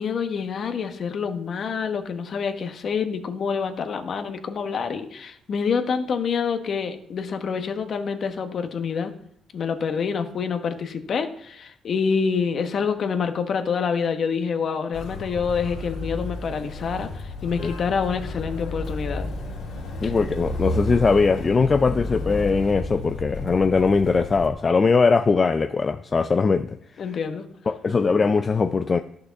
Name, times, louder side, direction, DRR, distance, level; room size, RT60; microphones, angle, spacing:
voice 1, 0.0-9.1 9.5-19.3 20.0-20.1 27.0-27.5, left 6 dB, 55° left, 1.2 m, -27 dB
Motor vehicle (road), 14.9-24.5, left 1 dB, 80° left, 2.5 m, -32 dB
voice 2, 20.0-26.8 27.7-29.0, left 4 dB, 35° left, 0.5 m, -20 dB
12.0 x 6.6 x 5.8 m
cardioid pair, 90°, 0 cm